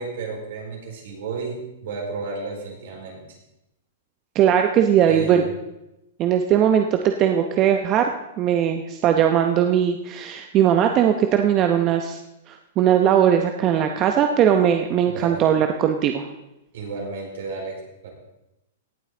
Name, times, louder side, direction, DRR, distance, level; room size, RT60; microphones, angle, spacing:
voice 1, 0.0-3.2 5.1-5.5 15.1-15.5 16.7-18.1, right 4 dB, 70° right, -1 dB, 4.5 m, -32 dB
voice 2, 4.3-5.5 6.2-8.1 8.4-12.2 12.5-16.3, right 9 dB, 35° right, 5 dB, 0.8 m, -19 dB
17.5 x 8.0 x 3.9 m, 0.91 s
hypercardioid pair, 135°, 0 cm